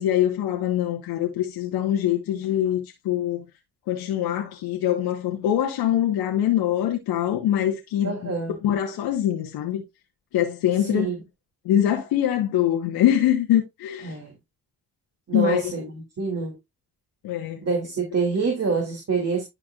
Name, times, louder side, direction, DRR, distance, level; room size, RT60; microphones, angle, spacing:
voice 1, 0.0-3.4 3.9-8.3 8.6-9.8 10.3-11.1 11.6-14.2 15.3-15.6 17.2-17.6, left 11 dB, 85° left, 1.3 m, -23 dB
voice 2, 8.0-8.5 10.8-11.2 14.0-14.3 15.3-16.6 17.6-19.4, right 4 dB, 40° right, 2.4 m, -26 dB
11.0 x 4.7 x 2.4 m
supercardioid pair, 65°, 37 cm